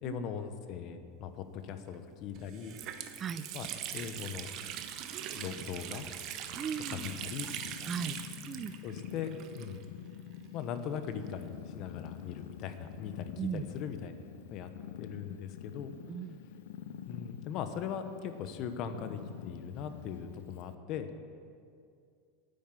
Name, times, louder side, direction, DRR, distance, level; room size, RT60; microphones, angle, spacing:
voice 1, 0.0-2.8 3.5-3.7 3.9-4.5 5.3-6.1 6.9-7.5 7.8-7.9 8.8-9.8 10.5-14.2 14.5-14.7 15.0-15.9 17.1-21.1, left 7 dB, 45° left, 9 dB, 1.0 m, -40 dB
Water tap faucet, 1.9-2.0 2.3-10.1 10.3-10.4 11.3-12.8, right 10 dB, 45° right, 0.8 m, -42 dB
Purr, 6.0-20.8, left 9 dB, 80° left, 0.6 m, -47 dB
voice 2, 6.6-7.1 7.8-8.2 8.5-8.7 13.4-13.7 16.1-16.4, right 7 dB, 25° right, 13 dB, 0.4 m, -37 dB
9.4 x 8.9 x 9.2 m, 2.3 s
supercardioid pair, 140°, 0 cm